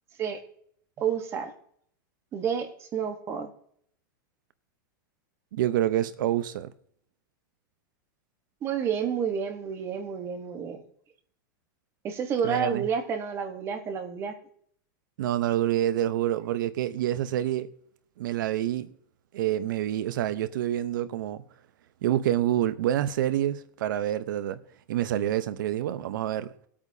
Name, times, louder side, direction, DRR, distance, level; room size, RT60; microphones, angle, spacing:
voice 1, 1.0-1.5 2.3-3.5 8.6-10.8 12.0-14.3, right 7 dB, 25° right, 1.2 m, -30 dB
voice 2, 5.5-6.7 12.4-12.8 15.2-17.7 18.2-18.9 19.3-21.4 22.0-24.6 24.9-26.5, right 12 dB, 75° right, 0.8 m, -27 dB
20.0 x 8.6 x 2.8 m
supercardioid pair, 160°, 11 cm